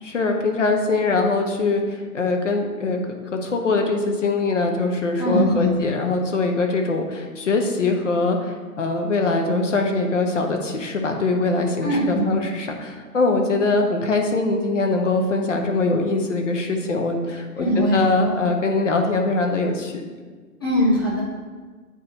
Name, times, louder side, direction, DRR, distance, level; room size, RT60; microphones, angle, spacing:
voice 1, 0.0-20.0, left 3 dB, 50° left, 3 dB, 0.8 m, -22 dB
voice 2, 5.2-5.7 11.8-12.3 17.6-18.4 20.6-21.2, equal, 15° left, -8 dB, 0.8 m, -21 dB
8.5 x 2.9 x 4.0 m, 1.5 s
hypercardioid pair, 170°, 47 cm